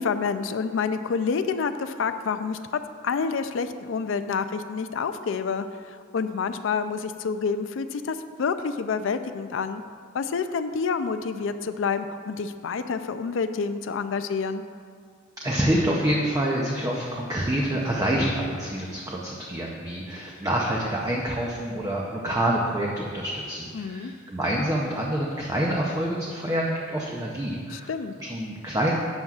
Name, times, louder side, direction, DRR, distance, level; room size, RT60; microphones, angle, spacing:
voice 1, 0.0-2.6 3.0-5.7 6.1-9.8 10.1-14.6 23.7-24.1 27.7-28.1, left 5 dB, 70° left, 10 dB, 0.4 m, -28 dB
voice 2, 15.4-27.9 28.2-28.9, right 1 dB, 20° right, -3 dB, 0.6 m, -27 dB
11.5 x 7.5 x 2.4 m, 2.1 s
head